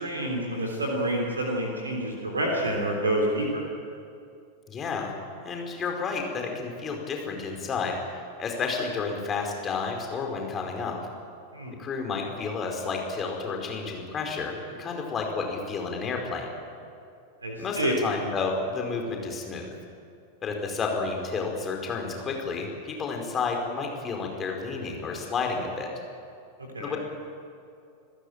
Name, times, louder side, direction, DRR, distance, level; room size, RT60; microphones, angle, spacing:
voice 1, 0.0-3.7 11.5-11.7 17.4-17.9 26.7-26.9, right 1 dB, 75° right, 0 dB, 3.4 m, -28 dB
voice 2, 4.7-5.1 5.4-11.0 11.8-16.5 17.6-19.7 20.4-25.9 26.8-27.0, left 4 dB, 25° left, 2 dB, 4.8 m, -31 dB
27.5 x 15.0 x 9.0 m, 2.6 s
figure-of-eight pair, 90°, 0 cm